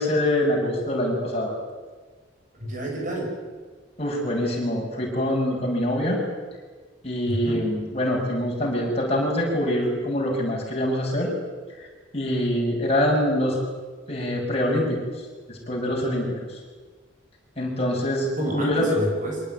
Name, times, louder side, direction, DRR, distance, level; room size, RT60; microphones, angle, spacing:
voice 1, 0.0-1.5 4.0-6.2 7.0-11.3 11.8-11.9 12.1-13.6 14.1-15.0 15.5-16.3 17.6-19.0, left 1 dB, 30° left, -2 dB, 6.8 m, -24 dB
voice 2, 2.6-3.3 7.3-7.7 18.4-19.4, right 1 dB, 40° right, 1 dB, 6.7 m, -28 dB
24.5 x 18.5 x 9.5 m, 1.4 s
head